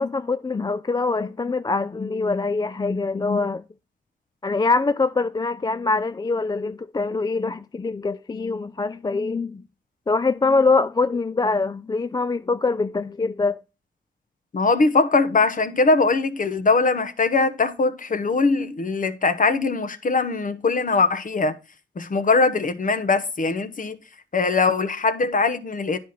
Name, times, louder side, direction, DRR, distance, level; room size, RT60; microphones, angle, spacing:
voice 1, 0.0-3.6 4.4-9.6 10.1-13.6, left 3 dB, 20° left, 0.3 m, -24 dB
voice 2, 14.5-21.6 22.0-24.0 24.3-26.0, left 3 dB, 45° left, 0.9 m, -21 dB
10.0 x 4.3 x 4.9 m
cardioid pair, 60°, 19 cm